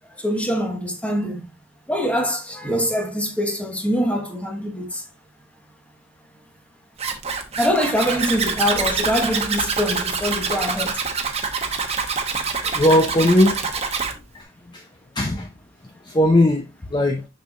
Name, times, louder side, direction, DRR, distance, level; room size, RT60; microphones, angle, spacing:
voice 1, 0.1-1.4 1.9-5.0 7.5-11.0, equal, 5° left, 1.3 m, -24 dB
Zipper (clothing), 7.0-14.1, right 5 dB, 35° right, 1.1 m, -25 dB
voice 2, 12.6-13.7 14.3-14.9 15.1-15.5 16.0-16.6 16.9-17.3, left 1 dB, 25° left, 0.6 m, -18 dB
6.6 x 6.2 x 2.5 m
head